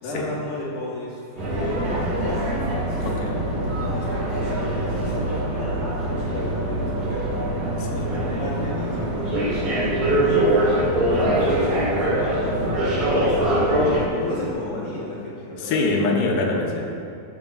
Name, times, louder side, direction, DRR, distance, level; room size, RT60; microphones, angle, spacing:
voice 1, 0.0-2.5 3.6-5.5 5.7-7.3 8.1-10.5 11.1-15.8, left 1 dB, 55° left, -7 dB, 1.7 m, -32 dB
sound 1, 1.4-14.1, right 1 dB, 60° right, 3.4 m, -23 dB
voice 2, 3.0-3.4 7.8-8.1 11.1-11.4 15.6-16.8, left 3 dB, 80° left, 0 dB, 2.5 m, -24 dB
13.0 x 6.6 x 2.4 m, 2.6 s
omnidirectional pair, 3.9 m